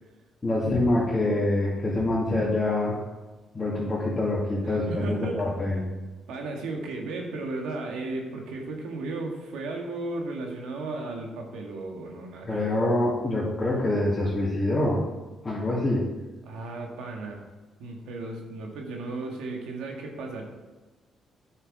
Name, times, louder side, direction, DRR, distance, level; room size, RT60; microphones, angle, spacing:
voice 1, 0.4-3.0 3.5-5.8 12.5-15.0 15.4-16.0, left 1 dB, 25° left, -7 dB, 2.4 m, -25 dB
voice 2, 4.6-5.5 5.7-5.8 6.3-12.7 16.4-17.5 17.8-20.4, right 2 dB, 90° right, 1 dB, 1.8 m, -35 dB
9.3 x 6.7 x 4.9 m, 1.2 s
cardioid pair, 90°, 0 cm